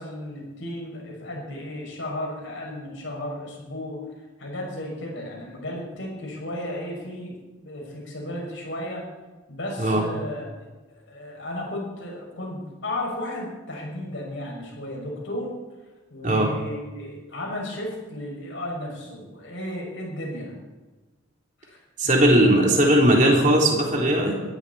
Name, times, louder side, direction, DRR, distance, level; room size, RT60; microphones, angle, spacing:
voice 1, 0.0-4.0 4.4-7.4 7.6-9.0 9.5-10.5 11.1-15.5 16.1-20.5 21.6-21.8 22.0-22.7, left 1 dB, 65° left, -2 dB, 6.7 m, -34 dB
voice 2, 22.0-24.4, right 1 dB, 35° right, -1 dB, 3.6 m, -18 dB
22.5 x 14.0 x 4.3 m, 1.2 s
head